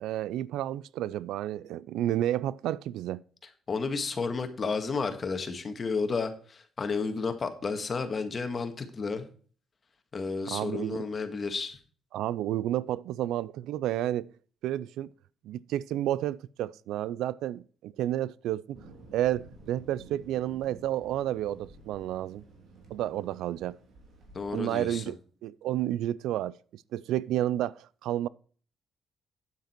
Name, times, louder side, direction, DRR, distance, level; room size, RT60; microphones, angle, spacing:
voice 1, 0.0-3.2 10.5-11.0 12.1-14.3 14.6-15.1 15.4-18.8 19.1-22.4 22.9-23.8 24.5-25.2 25.4-28.3, right 13 dB, 90° right, 0.4 m, -31 dB
voice 2, 3.7-9.3 10.1-11.8 24.3-25.0, left 4 dB, 40° left, 1.7 m, -32 dB
Thunder, 18.7-24.6, right 2 dB, 65° right, 3.3 m, -52 dB
9.3 x 7.4 x 4.5 m
cardioid pair, 90°, 0 cm